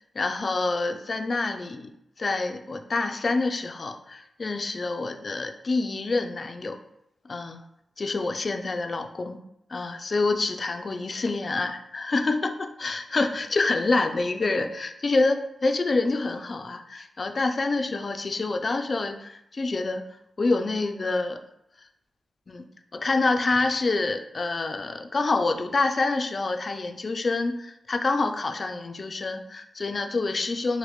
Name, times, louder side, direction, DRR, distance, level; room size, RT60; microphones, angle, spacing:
voice 1, 0.1-1.9 2.2-6.8 7.2-7.6 8.0-9.4 9.7-20.0 20.4-21.4 22.5-22.7 22.9-30.8, left 3 dB, 35° left, 6 dB, 0.3 m, -27 dB
6.1 x 2.1 x 3.0 m, 0.80 s
wide cardioid pair, 160°, 0 cm